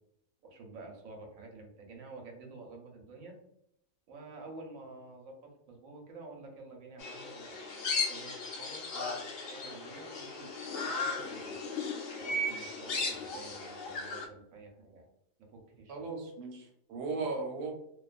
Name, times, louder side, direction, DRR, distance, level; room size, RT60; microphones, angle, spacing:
voice 1, 0.4-3.4 4.1-10.5 10.8-11.6 12.1-15.1 15.5-16.0, right 3 dB, 70° right, 1 dB, 1.0 m, -50 dB
sound 1, 7.0-14.3, left 3 dB, 75° left, 0.5 m, -36 dB
voice 2, 15.9-17.7, right 3 dB, 85° right, 2 dB, 1.2 m, -37 dB
2.5 x 2.3 x 2.3 m, 0.76 s
omnidirectional pair, 1.6 m